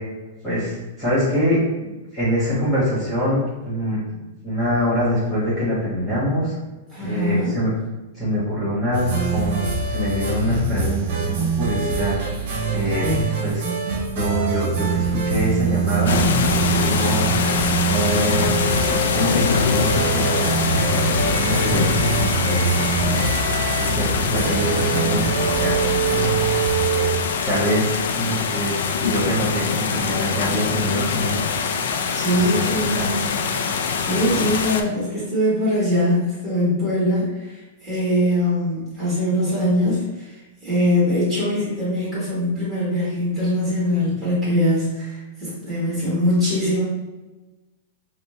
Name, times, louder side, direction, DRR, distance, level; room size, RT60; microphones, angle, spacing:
voice 1, 0.4-4.0 4.4-6.5 7.0-7.7 8.1-12.2 12.7-13.0 13.4-13.6 14.1-16.6 16.9-17.3 17.8-20.0 20.3-22.1 22.3-22.9 23.8-26.3 27.5-28.7 29.0-31.4 32.3-33.1 34.3-34.5, equal, 10° left, -9 dB, 1.2 m, -24 dB
voice 2, 6.9-7.6 13.0-13.5 32.1-33.3 33.8-40.4 40.6-46.8, left 1 dB, 10° right, -10 dB, 1.3 m, -22 dB
sound 1, 8.9-27.2, right 4 dB, 45° right, 1.4 m, -23 dB
sound 2, 16.1-34.8, left 6 dB, 65° left, 0.4 m, -23 dB
5.1 x 2.2 x 3.1 m, 1.1 s
supercardioid pair, 180°, 0 cm